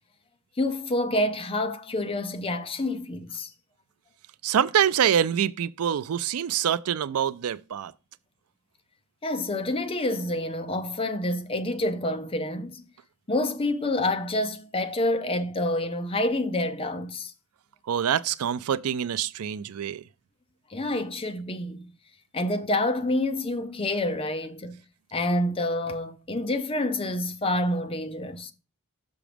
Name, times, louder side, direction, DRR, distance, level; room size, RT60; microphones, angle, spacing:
voice 1, 0.6-3.5 9.2-12.8 13.3-17.3 20.7-21.9 22.3-24.8 25.1-28.5, left 1 dB, 25° left, 0.6 m, -28 dB
voice 2, 4.4-7.9 17.9-20.0, right 9 dB, 80° right, 0.4 m, -25 dB
6.1 x 5.9 x 5.1 m
head